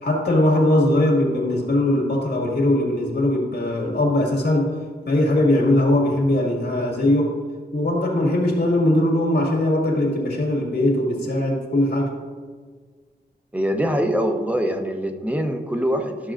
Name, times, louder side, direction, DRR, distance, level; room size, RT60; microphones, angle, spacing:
voice 1, 0.0-4.8 5.1-7.4 7.7-12.2, left 1 dB, 75° left, -2 dB, 1.9 m, -20 dB
voice 2, 13.5-16.3, equal, 10° right, 4 dB, 0.9 m, -23 dB
12.5 x 6.4 x 2.5 m, 1.5 s
wide cardioid pair, 75°, 18 cm